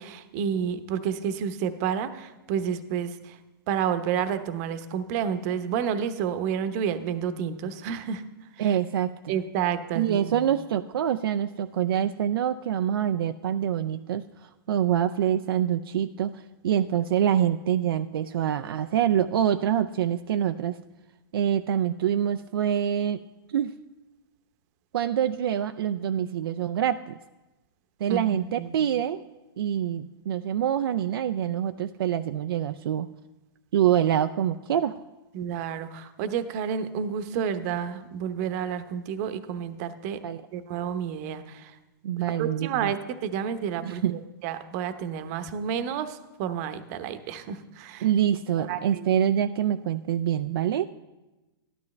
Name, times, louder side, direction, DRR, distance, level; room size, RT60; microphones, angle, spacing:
voice 1, 0.0-3.4 3.7-8.2 8.6-8.8 9.3-10.5 28.1-28.8 35.3-40.2 40.5-41.7 42.4-43.0 43.2-48.0 48.6-49.1, right 8 dB, 45° right, 10 dB, 0.9 m, -30 dB
voice 2, 8.6-9.4 10.0-20.8 21.3-23.2 23.5-23.7 24.9-27.2 28.0-29.2 29.6-33.1 33.7-35.0 40.2-40.4 42.0-43.0 43.8-44.2 48.0-50.8, right 10 dB, 75° right, 9 dB, 0.4 m, -25 dB
12.5 x 11.5 x 3.2 m, 1.1 s
hypercardioid pair, 130°, 12 cm